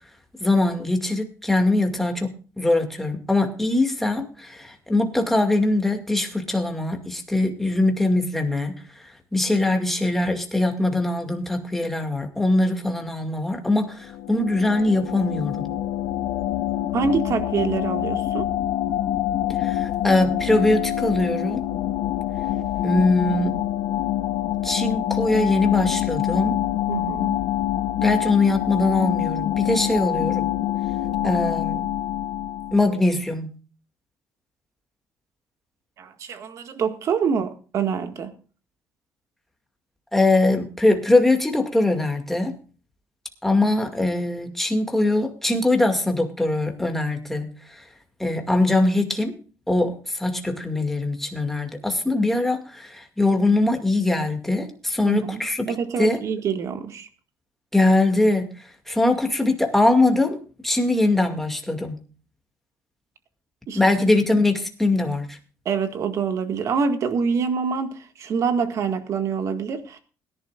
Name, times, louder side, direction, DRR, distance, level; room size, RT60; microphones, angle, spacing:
voice 1, 0.4-15.7 19.6-21.6 22.8-23.6 24.6-26.6 28.0-30.5 31.2-31.9 32.7-33.5 40.1-42.6 43.4-47.9 48.2-49.3 49.7-56.2 57.7-62.0 63.7-65.4, left 2 dB, 5° left, 2.2 m, -22 dB
sound 1, 14.0-32.9, left 12 dB, 75° left, 0.5 m, -26 dB
voice 2, 16.9-18.5 26.9-27.4 36.0-38.3 55.0-55.4 55.7-57.1 63.7-63.8 65.7-70.0, right 6 dB, 55° right, 1.8 m, -25 dB
21.0 x 11.0 x 2.5 m
cardioid pair, 130°, 6 cm